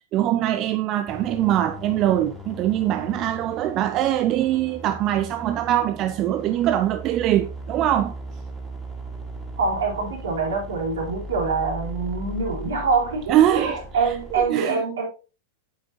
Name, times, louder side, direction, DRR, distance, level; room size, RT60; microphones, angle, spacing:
voice 1, 0.1-8.2 13.3-13.8 14.3-14.8, right 12 dB, 40° right, 0.6 m, -22 dB
sound 1, 1.1-14.5, right 1 dB, 5° right, 2.8 m, -38 dB
voice 2, 9.6-15.1, right 4 dB, 80° right, 4.0 m, -25 dB
8.7 x 7.3 x 2.7 m
hypercardioid pair, 105°, 0 cm